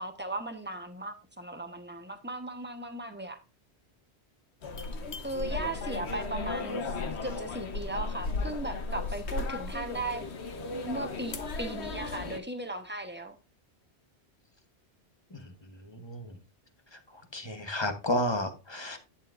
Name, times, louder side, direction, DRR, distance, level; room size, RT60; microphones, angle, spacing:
voice 1, 0.0-3.4 5.2-7.0 7.2-10.3 10.8-13.4, right 2 dB, 10° right, 1.2 m, -37 dB
sound 1, 4.6-12.4, left 3 dB, 80° left, 1.4 m, -35 dB
voice 2, 15.9-16.3 17.3-19.0, left 1 dB, 25° left, 1.3 m, -31 dB
11.0 x 8.4 x 2.6 m
omnidirectional pair, 1.1 m